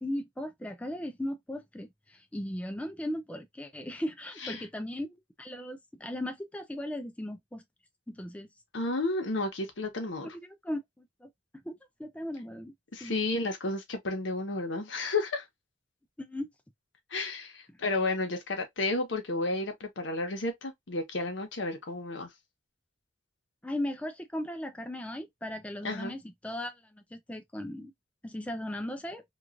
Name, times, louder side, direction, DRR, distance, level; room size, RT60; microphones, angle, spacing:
voice 1, 0.0-7.6 8.1-8.5 10.3-11.3 11.7-11.8 12.0-12.7 13.0-13.2 16.2-16.5 23.6-27.9 28.2-29.2, left 1 dB, 5° left, 0.4 m, -37 dB
voice 2, 8.7-10.3 12.9-15.4 17.1-22.3 25.8-26.1, left 2 dB, 80° left, 0.9 m, -32 dB
3.0 x 2.4 x 2.4 m
head